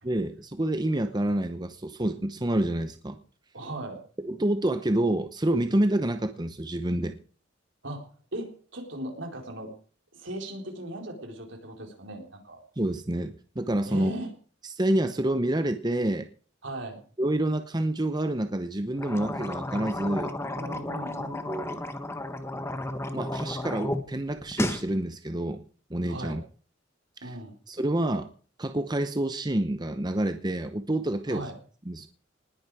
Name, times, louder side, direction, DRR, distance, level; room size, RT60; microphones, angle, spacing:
voice 1, 0.0-3.2 4.2-7.2 12.8-14.1 14.8-16.3 17.2-20.3 21.5-21.8 23.1-25.6 25.9-26.4 27.2-27.3 27.7-28.3 28.6-31.5 31.9-32.1, right 1 dB, 20° right, 9 dB, 0.8 m, -28 dB
voice 2, 3.5-4.0 7.8-8.0 8.3-9.7 10.1-12.6 13.8-14.3 16.6-17.0 20.5-21.5 26.1-26.4 27.2-27.5 31.3-31.5, right 1 dB, 75° right, 3 dB, 4.1 m, -38 dB
sound 1, 18.9-24.0 24.3-24.9, left 1 dB, 15° left, 1.3 m, -33 dB
19.5 x 10.5 x 4.9 m, 0.43 s
head